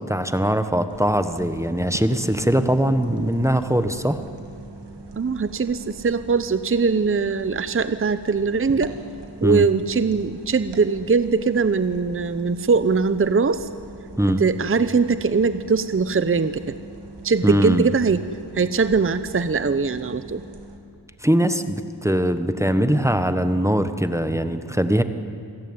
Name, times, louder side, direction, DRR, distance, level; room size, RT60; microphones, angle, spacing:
voice 1, 0.0-4.2 9.4-9.7 14.2-14.4 17.4-17.9 21.2-25.0, right 1 dB, 5° right, 10 dB, 1.3 m, -21 dB
sound 1, 0.9-20.8, right 2 dB, 65° right, 2.8 m, -41 dB
voice 2, 5.2-8.9 9.4-13.7 14.4-16.7 17.2-18.3 18.5-20.4, right 4 dB, 30° right, 12 dB, 0.8 m, -21 dB
27.5 x 17.0 x 9.7 m, 2.5 s
wide cardioid pair, 80°, 45 cm